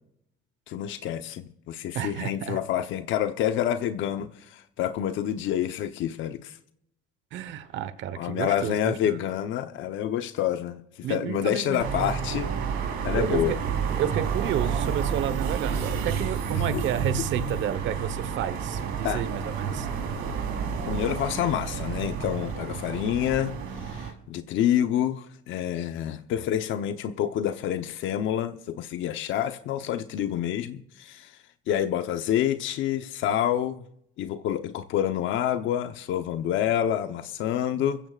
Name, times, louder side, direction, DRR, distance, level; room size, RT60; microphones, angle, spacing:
voice 1, 0.7-6.6 8.1-12.5 13.0-13.6 16.5-16.8 19.0-19.2 20.9-31.3 31.7-33.8 34.2-38.0, left 10 dB, 70° left, 0.9 m, -28 dB
voice 2, 1.9-2.6 7.3-9.2 11.0-11.8 13.2-13.6 14.0-19.9, right 10 dB, 65° right, 1.2 m, -31 dB
sound 1, 11.8-24.1, right 6 dB, 80° right, 4.0 m, -30 dB
26.0 x 15.0 x 2.5 m
cardioid pair, 105°, 21 cm